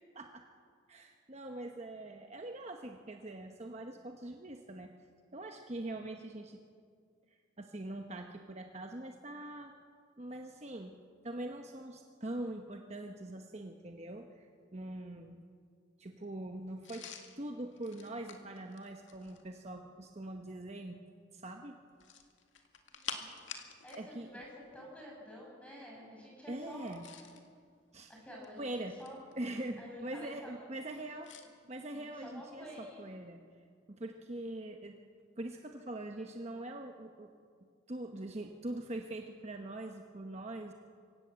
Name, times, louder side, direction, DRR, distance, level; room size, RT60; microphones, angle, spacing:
voice 1, 0.9-4.9 5.3-6.6 7.6-9.7 10.2-10.9 11.2-15.4 16.0-17.0 17.4-21.0 21.3-21.8 24.0-24.3 26.5-27.0 27.9-28.1 28.6-28.9 29.4-31.3 31.7-33.4 33.9-34.9 35.4-37.3 37.9-40.7, right 1 dB, 35° right, 4 dB, 1.0 m, -43 dB
sound 1, 16.8-19.5 21.9-24.1 24.3-24.5 26.7-27.5 28.2-29.3 31.2-31.5, left 7 dB, 80° left, 2.1 m, -48 dB
voice 2, 22.9-24.5 24.7-27.0 28.1-28.7 29.0-29.2 29.8-30.7 31.6-31.7 31.9-33.0, equal, 5° left, -3 dB, 6.9 m, -50 dB
25.5 x 17.0 x 7.8 m, 2.1 s
head